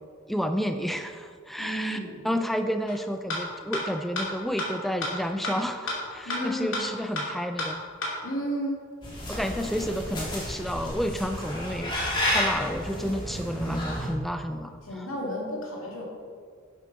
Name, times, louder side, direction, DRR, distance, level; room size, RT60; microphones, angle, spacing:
voice 1, 0.3-2.0 2.2-7.8 9.3-11.9 12.3-15.1, equal, ahead, 7 dB, 0.3 m, -30 dB
voice 2, 1.6-2.2 6.2-6.9 8.2-8.8 14.8-16.0, equal, 90° left, -3 dB, 2.6 m, -32 dB
sound 1, 2.9-3.0 3.3-3.4 3.7-3.8 4.2-4.3 4.6-4.7 5.0-5.1 5.4-5.5 5.9-6.0 6.3-6.4 6.7-6.8 7.2-7.3 7.6-7.7 8.0-8.1, left 2 dB, 70° left, 2.5 m, -29 dB
sound 2, 9.0-14.1, equal, 25° left, 2.2 m, -31 dB
11.0 x 8.3 x 4.1 m, 2.1 s
head